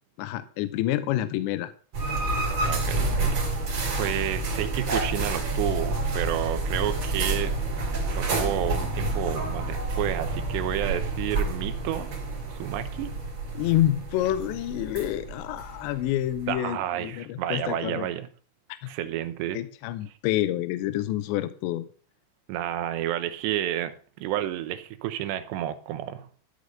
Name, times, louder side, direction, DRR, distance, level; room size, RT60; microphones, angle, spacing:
voice 1, 0.2-1.7 13.5-18.1 18.8-18.9 19.5-21.9, left 13 dB, 85° left, 12 dB, 3.0 m, -28 dB
sound 1, 1.9-16.5, right 2 dB, 40° right, 3.7 m, -29 dB
voice 2, 2.6-3.0 3.9-7.5 8.1-12.1 12.5-13.1 16.5-18.3 18.9-19.6 22.5-26.3, right 12 dB, 80° right, 10 dB, 2.9 m, -30 dB
13.0 x 5.2 x 6.4 m, 0.43 s
omnidirectional pair, 5.2 m